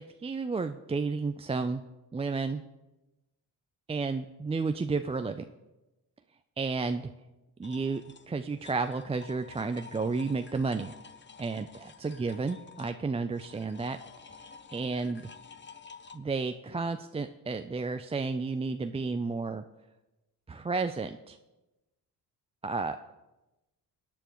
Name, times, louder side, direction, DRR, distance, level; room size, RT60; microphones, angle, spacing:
voice 1, 0.0-1.8 2.1-2.6 3.9-5.4 6.6-7.1 7.6-10.9 11.4-14.0 14.7-15.2 16.1-19.6 20.5-21.4 22.6-23.0, right 4 dB, 15° right, 7 dB, 0.4 m, -32 dB
sound 1, 7.6-16.2, left 5 dB, 25° left, 0.7 m, -51 dB
17.0 x 9.0 x 3.1 m, 1.0 s
supercardioid pair, 65°, 43 cm